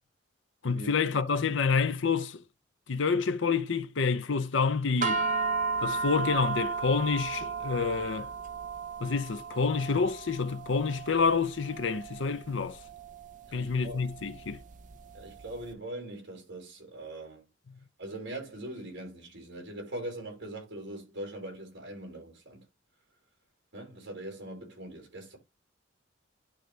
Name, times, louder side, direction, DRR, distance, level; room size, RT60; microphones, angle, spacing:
voice 1, 0.6-2.4 2.9-5.3 5.8-8.3 9.0-12.8 13.5-14.6, left 5 dB, 65° left, 0.7 m, -28 dB
sound 1, 5.0-15.5, right 4 dB, 40° right, 0.7 m, -35 dB
voice 2, 13.5-14.0 15.1-17.4 18.0-22.6 23.7-25.4, right 1 dB, 60° right, 4.7 m, -41 dB
11.0 x 3.9 x 3.3 m
head